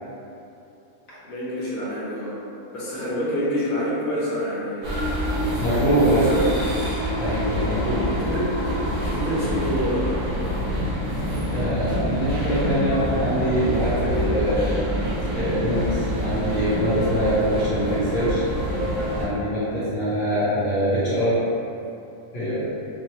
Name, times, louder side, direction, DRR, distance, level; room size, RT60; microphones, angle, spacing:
voice 1, 1.2-2.4 2.7-5.0 5.5-6.5 8.1-8.7 9.0-10.5, equal, 35° left, -9 dB, 1.0 m, -27 dB
sound 1, 4.8-19.2, equal, 80° right, 1.6 m, -26 dB
voice 2, 5.6-6.3 7.2-8.1 11.5-14.9 15.3-18.4 19.1-21.4 22.3-22.7, right 1 dB, 65° left, -10 dB, 1.3 m, -24 dB
4.6 x 2.0 x 3.1 m, 2.7 s
omnidirectional pair, 1.6 m